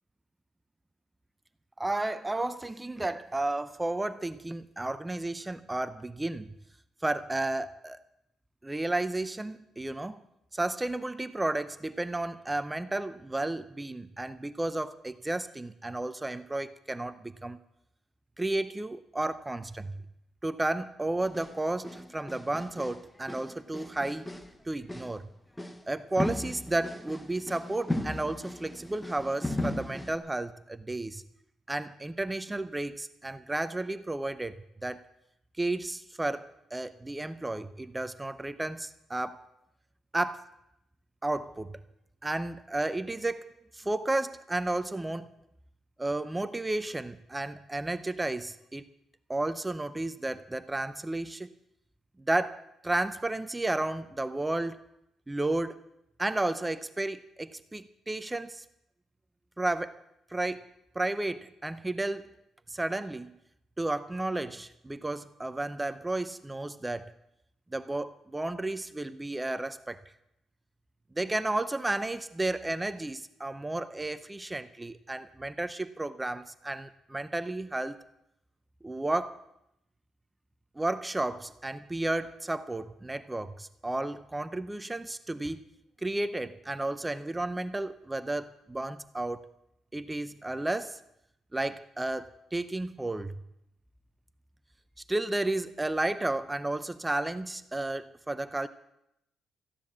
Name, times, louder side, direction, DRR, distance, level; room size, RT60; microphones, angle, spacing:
voice 1, 1.8-6.5 7.0-8.0 8.6-10.2 10.5-17.6 18.4-20.0 20.4-24.3 24.7-25.3 25.9-31.2 31.7-35.1 35.6-39.5 40.1-40.5 41.2-41.8 42.2-43.5 43.7-45.3 46.0-48.9 49.3-51.5 52.3-54.8 55.3-55.8 56.2-58.6 59.6-60.0 60.3-60.7 60.9-62.4 62.7-63.3 63.8-67.1 67.7-70.0 71.1-78.0 78.8-79.4 80.8-85.6 86.0-89.4 89.9-91.0 91.5-93.4 95.1-98.7, right 2 dB, 15° right, 13 dB, 0.6 m, -32 dB
sound 1, 21.2-21.6 21.8-23.0 23.3-24.5 24.8-25.2 25.6-25.8 26.2-30.2, left 1 dB, 10° left, 1.0 m, -37 dB
14.0 x 10.0 x 7.4 m, 0.81 s
cardioid pair, 115°, 0 cm